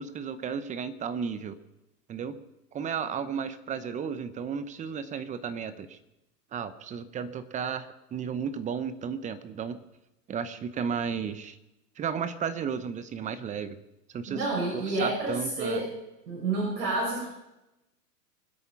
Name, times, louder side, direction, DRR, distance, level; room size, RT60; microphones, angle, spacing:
voice 1, 0.0-1.6 2.1-2.4 2.7-6.0 6.5-9.8 10.3-11.6 12.0-13.8 14.1-14.5 15.0-15.8, right 7 dB, 15° right, 12 dB, 0.8 m, -33 dB
voice 2, 14.3-15.9 16.3-17.2, right 2 dB, 65° right, -3 dB, 6.4 m, -29 dB
24.0 x 8.2 x 5.8 m, 0.95 s
hypercardioid pair, 120°, 49 cm